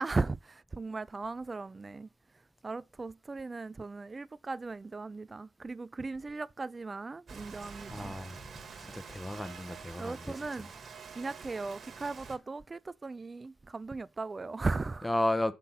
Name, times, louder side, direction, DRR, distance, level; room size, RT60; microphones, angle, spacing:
voice 1, 0.0-2.1 2.6-8.2 10.0-10.7 11.1-15.1, right 3 dB, 30° right, 0.4 m, -37 dB
Rain, 7.3-12.4, right 5 dB, 50° right, 1.6 m, -47 dB
voice 2, 7.9-10.7 15.0-15.5, left 1 dB, 10° left, 1.0 m, -34 dB
6.6 x 6.0 x 5.7 m
hypercardioid pair, 50°, 0 cm